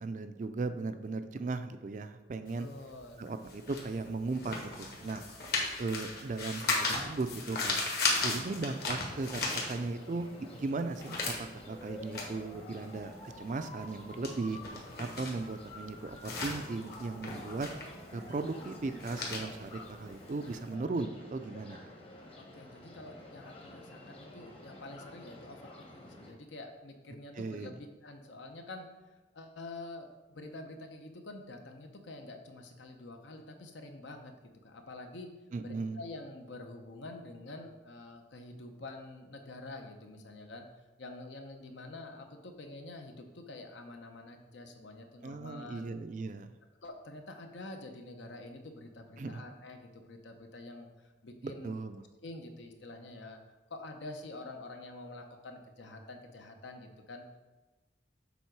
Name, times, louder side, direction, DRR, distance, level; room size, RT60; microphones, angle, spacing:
voice 1, 0.0-2.7 3.2-5.2 5.8-7.8 8.2-11.3 11.7-14.6 15.0-17.7 18.1-21.8 27.4-27.7 35.5-36.0 45.2-46.5 49.2-49.4 51.4-52.0, right 3 dB, 40° right, 9 dB, 0.4 m, -37 dB
sound 1, 2.5-10.2 10.6-20.6, left 3 dB, 55° left, 1.4 m, -36 dB
voice 2, 2.6-3.2 22.4-28.9 29.3-34.3 34.6-35.3 35.6-40.7 41.0-46.0 46.8-51.7 52.2-53.4 53.7-57.2, left 2 dB, 80° left, 5 dB, 0.8 m, -47 dB
sound 2, 8.4-26.3, left 1 dB, 30° left, 1.0 m, -50 dB
7.2 x 3.8 x 4.6 m, 1.2 s
head